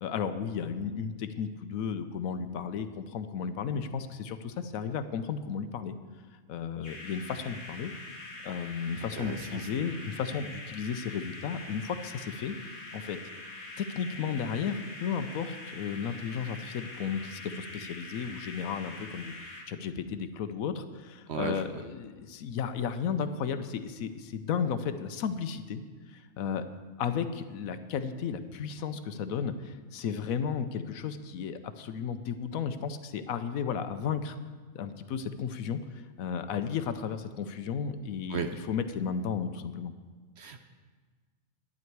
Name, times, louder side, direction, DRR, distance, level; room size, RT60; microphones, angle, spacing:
voice 1, 0.0-5.9 6.5-7.9 8.4-12.6 12.9-13.2 13.8-25.8 26.1-26.7 27.0-34.4 34.7-39.9, left 7 dB, 75° left, 10 dB, 1.1 m, -34 dB
sound 1, 6.8-19.6, left 2 dB, 50° left, 1.8 m, -44 dB
voice 2, 9.1-9.7 21.3-21.7 38.3-38.5 40.4-40.6, right 5 dB, 60° right, 7 dB, 0.8 m, -35 dB
11.0 x 9.8 x 4.6 m, 1.4 s
omnidirectional pair, 1.5 m